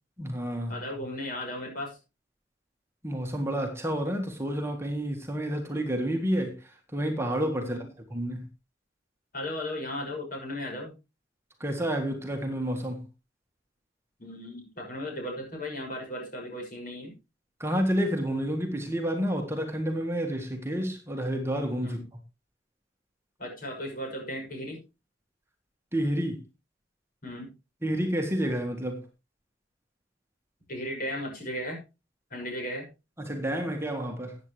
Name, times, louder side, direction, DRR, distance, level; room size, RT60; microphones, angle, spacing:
voice 1, 0.2-0.7 3.0-8.5 11.6-13.0 17.6-22.0 25.9-26.4 27.8-29.0 33.2-34.4, equal, 15° right, 1.6 m, -30 dB
voice 2, 0.7-2.0 7.6-7.9 9.3-10.9 14.2-17.1 21.8-22.0 23.4-24.8 27.2-27.5 30.7-31.8 32.3-32.9, left 1 dB, 50° left, 6.2 m, -36 dB
14.5 x 9.0 x 3.2 m
head